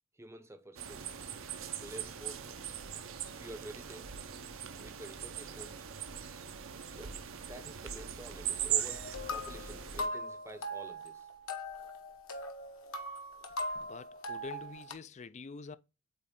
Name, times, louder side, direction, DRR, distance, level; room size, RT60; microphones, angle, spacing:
voice 1, 0.2-1.0 1.8-2.4 3.4-4.2 4.8-5.9 6.9-11.3, right 1 dB, 15° right, 0.7 m, -49 dB
sound 1, 0.8-10.1, right 9 dB, 65° right, 0.7 m, -40 dB
sound 2, 8.9-14.9, left 1 dB, 70° left, 1.2 m, -40 dB
voice 2, 13.7-15.8, left 4 dB, 35° left, 0.4 m, -46 dB
8.0 x 3.2 x 3.7 m
head